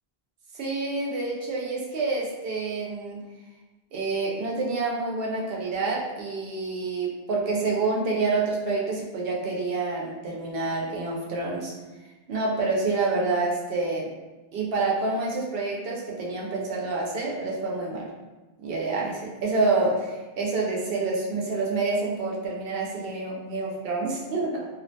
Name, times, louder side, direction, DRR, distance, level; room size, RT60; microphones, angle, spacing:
voice 1, 0.5-3.2 3.9-11.7 12.3-14.1 14.5-18.1 18.6-24.7, right 3 dB, 70° right, -2 dB, 0.8 m, -28 dB
2.4 x 2.1 x 2.6 m, 1.2 s
omnidirectional pair, 1.0 m